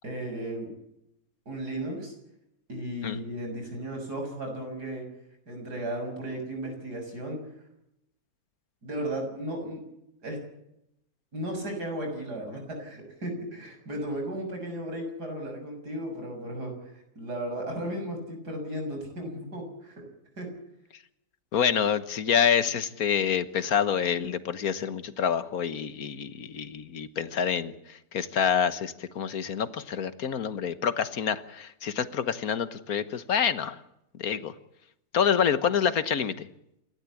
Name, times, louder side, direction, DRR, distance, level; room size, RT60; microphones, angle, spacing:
voice 1, 0.0-0.7 1.5-2.1 2.7-5.0 5.5-7.4 8.8-9.8 10.2-10.4 11.3-20.1 20.4-20.5, right 1 dB, 85° right, 3 dB, 7.2 m, -35 dB
voice 2, 21.5-33.8 34.2-34.5 35.1-36.5, left 7 dB, 65° left, 13 dB, 1.7 m, -27 dB
28.5 x 12.5 x 8.5 m, 0.82 s
omnidirectional pair, 1.7 m